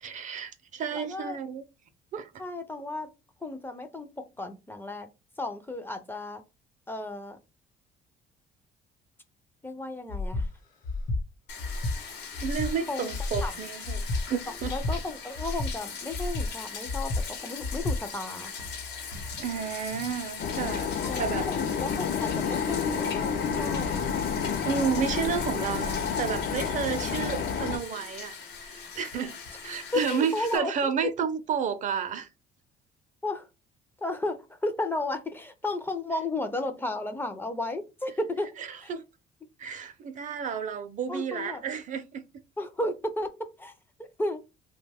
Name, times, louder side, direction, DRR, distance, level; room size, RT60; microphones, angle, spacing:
voice 1, 0.0-1.6 2.1-2.4 12.4-14.8 19.4-21.5 24.3-28.4 28.6-32.3 38.6-39.0 39.6-42.3, right 7 dB, 50° right, 0.5 m, -31 dB
voice 2, 0.9-1.4 2.4-3.1 3.4-5.1 5.4-6.4 6.9-7.4 9.6-10.5 12.9-13.1 13.4-13.5 14.7-18.5 21.0-24.0 29.9-30.9 33.2-33.5 34.0-38.5 38.8-38.9 41.1-41.6 42.6-43.3 43.6-43.7 44.2-44.4, left 2 dB, 10° left, 0.4 m, -33 dB
Breathing, 10.1-10.5 10.8-11.2 11.6-12.0 12.3-12.7 13.1-13.5 13.8-14.2 14.6-15.0 15.3-15.7 16.1-16.5 16.9-17.2 17.6-18.0, left 2 dB, 50° left, 1.0 m, -30 dB
Bathtub (filling or washing), 11.5-30.6, left 6 dB, 85° left, 0.9 m, -40 dB
sound 1, 20.4-27.8, left 6 dB, 65° left, 0.5 m, -30 dB
2.8 x 2.2 x 3.3 m
cardioid pair, 110°, 17 cm